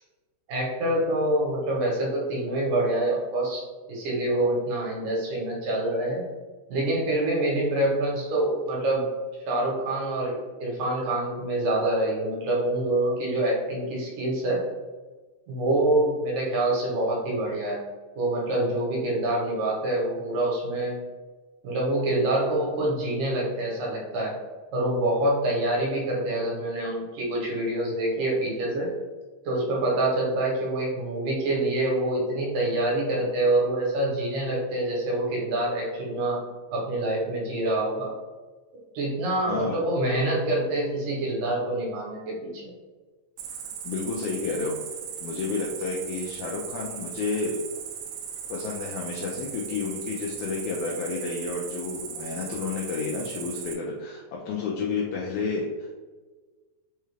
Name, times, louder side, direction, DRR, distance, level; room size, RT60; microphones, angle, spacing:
voice 1, 0.5-6.2 6.7-9.1 9.5-14.7 15.5-17.8 18.2-21.0 21.6-24.3 24.7-28.9 29.5-36.4 36.7-38.1 38.9-42.6, right 1 dB, 70° right, -3 dB, 2.4 m, -26 dB
voice 2, 39.5-39.8 43.5-44.8 45.2-47.6 48.5-56.0, left 4 dB, 90° left, -2 dB, 1.7 m, -31 dB
Cricket, 43.4-53.7, right 8 dB, 90° right, 1.6 m, -38 dB
5.4 x 2.3 x 3.2 m, 1.3 s
omnidirectional pair, 4.0 m